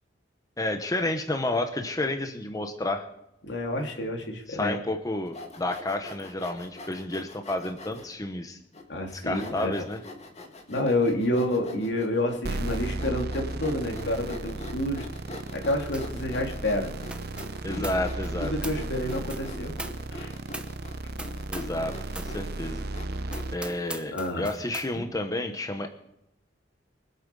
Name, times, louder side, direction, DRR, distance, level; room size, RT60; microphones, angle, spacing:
voice 1, 0.6-3.0 4.5-8.6 9.2-10.0 17.6-18.5 21.5-22.8 23.5-25.9, left 2 dB, 20° left, 6 dB, 1.1 m, -30 dB
voice 2, 3.4-4.8 8.9-9.8 10.7-15.1 15.5-16.9 17.7-17.9 18.4-19.8 20.1-20.3 24.1-24.5 24.9-25.1, left 1 dB, 75° left, 2 dB, 3.0 m, -29 dB
Sawing, 5.3-8.1 8.7-8.8 9.3-23.7, left 2 dB, 40° left, 2.1 m, -44 dB
sound 1, 12.4-23.5, right 2 dB, 60° right, 0.8 m, -35 dB
sound 2, 15.9-16.2 16.5-21.8 22.1-22.4 22.8-22.9 23.3-24.9, right 2 dB, 5° right, 0.8 m, -42 dB
24.0 x 8.1 x 5.5 m, 0.85 s
head